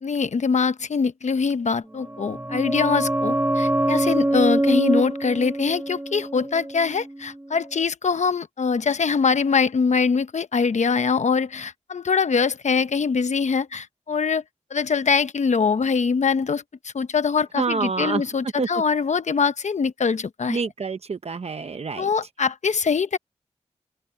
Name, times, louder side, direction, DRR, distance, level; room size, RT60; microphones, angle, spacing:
voice 1, 0.0-14.4 14.7-20.6 22.0-23.2, left 5 dB, 70° left, 1.0 m, -23 dB
sound 1, 1.9-7.4 7.6-7.7, right 1 dB, 15° right, 1.9 m, -24 dB
voice 2, 17.6-18.2 18.6-18.7 20.5-22.1, right 4 dB, 60° right, 0.8 m, -27 dB
open air
wide cardioid pair, 65°, 12 cm